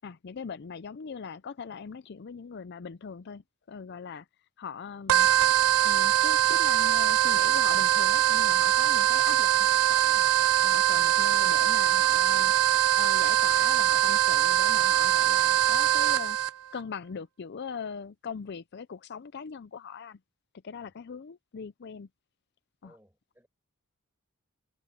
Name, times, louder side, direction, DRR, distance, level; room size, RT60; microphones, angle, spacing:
voice 1, 0.0-3.4 3.7-4.3 4.6-5.3 5.8-10.3 10.6-12.5 13.0-16.4 16.7-20.2 20.6-22.1 22.8-22.9, left 6 dB, 50° left, 0.4 m, -40 dB
sound 1, 5.1-16.5, right 11 dB, 75° right, 0.3 m, -22 dB
voice 2, 22.8-23.5, equal, 10° right, 7.5 m, -62 dB
head